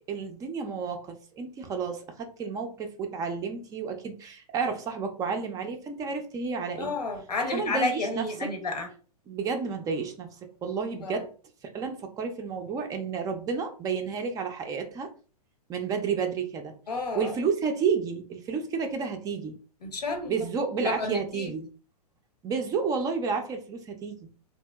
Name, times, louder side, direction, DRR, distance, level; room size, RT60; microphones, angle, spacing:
voice 1, 0.1-6.9 7.5-8.5 9.3-10.4 10.6-11.3 11.7-15.1 15.7-16.7 17.1-19.5 20.3-21.7 22.4-24.3, right 5 dB, 20° right, 5 dB, 0.3 m, -31 dB
voice 2, 6.8-8.9 11.0-11.2 16.9-17.3 19.8-20.4 20.8-21.5, left 3 dB, 90° left, 5 dB, 0.8 m, -31 dB
2.8 x 2.6 x 2.2 m, 0.38 s
hypercardioid pair, 120°, 20 cm